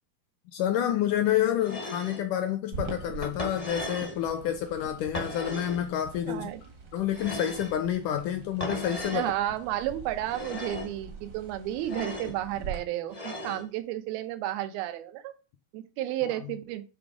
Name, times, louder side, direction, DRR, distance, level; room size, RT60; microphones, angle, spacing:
voice 1, 0.5-6.5 6.9-9.3 16.2-16.3, left 11 dB, 80° left, 1.9 m, -28 dB
sound 1, 1.6-2.2 3.2-4.2 5.1-5.8 7.1-7.8 8.6-9.3 10.2-10.9 11.8-12.3 13.1-13.6, left 1 dB, 40° left, 0.4 m, -36 dB
sound 2, 2.7-12.8, right 4 dB, 60° right, 1.1 m, -44 dB
voice 2, 6.3-6.6 9.1-15.3 15.7-16.8, right 13 dB, 85° right, 2.7 m, -32 dB
10.0 x 3.5 x 5.0 m
omnidirectional pair, 4.3 m